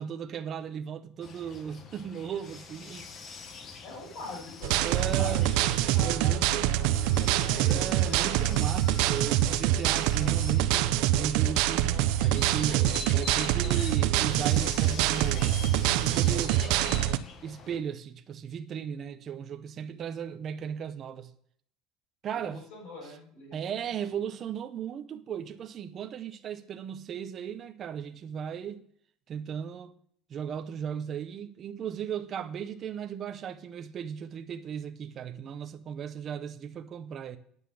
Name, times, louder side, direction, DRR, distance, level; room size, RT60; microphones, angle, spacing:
voice 1, 0.0-3.1 4.8-5.5 6.0-6.6 7.7-15.7 16.0-21.3 22.2-22.6 23.5-28.8 29.3-29.9 30.3-37.4, right 8 dB, 30° right, 0.7 m, -36 dB
sound 1, 1.2-17.8, left 5 dB, 30° left, 1.1 m, -45 dB
voice 2, 3.8-5.6 5.9-8.2 22.3-23.7, left 2 dB, 60° left, 6.4 m, -43 dB
sound 2, 4.6-17.2, right 13 dB, 65° right, 0.6 m, -25 dB
9.7 x 8.1 x 6.9 m
cardioid pair, 175°, 0 cm